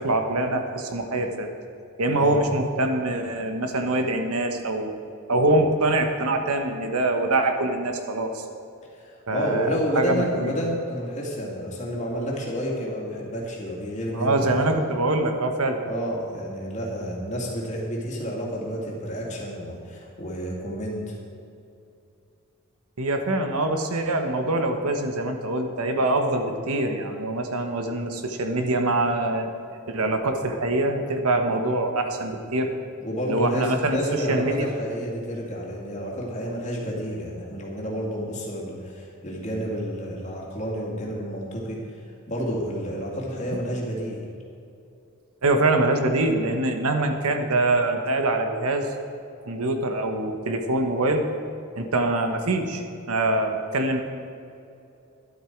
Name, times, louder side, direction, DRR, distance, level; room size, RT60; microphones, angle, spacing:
voice 1, 0.0-1.5 2.0-4.9 5.3-8.4 9.3-9.7 9.9-10.5 14.1-15.8 23.0-29.5 29.9-32.7 33.3-34.7 45.4-48.9 49.4-51.2 51.8-54.0, right 2 dB, 85° right, 5 dB, 1.3 m, -24 dB
voice 2, 8.9-14.5 15.9-21.1 33.0-42.0 42.3-44.2, equal, 30° left, -3 dB, 2.4 m, -30 dB
12.5 x 12.0 x 4.6 m, 2.6 s
head